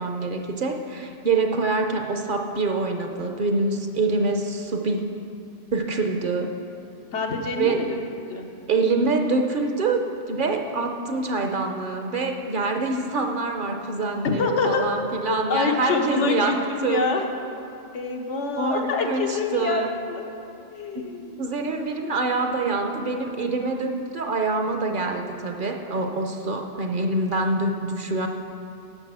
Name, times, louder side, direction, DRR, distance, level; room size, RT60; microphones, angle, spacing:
voice 1, 0.0-5.0 5.7-6.5 7.6-7.9 8.7-10.0 10.3-16.5 16.8-17.1 18.6-19.9 20.9-21.1 21.4-28.3, right 3 dB, 50° right, 4 dB, 0.8 m, -25 dB
voice 2, 7.1-8.0 8.3-8.5 14.2-14.8 15.5-17.3 17.9-20.3 20.7-21.4, left 4 dB, 85° left, 3 dB, 1.3 m, -26 dB
10.0 x 6.8 x 6.1 m, 2.7 s
omnidirectional pair, 1.2 m